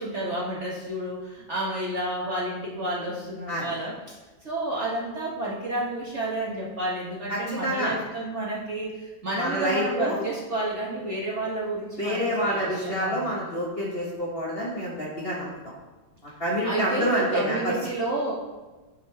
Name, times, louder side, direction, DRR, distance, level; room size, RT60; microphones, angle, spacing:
voice 1, 0.0-4.0 4.4-13.3 16.6-18.3, right 2 dB, 45° right, -5 dB, 1.2 m, -30 dB
voice 2, 7.3-8.0 9.4-10.2 12.0-15.6 16.4-17.7, equal, 35° left, -5 dB, 1.2 m, -27 dB
9.2 x 5.2 x 3.3 m, 1.2 s
omnidirectional pair, 2.1 m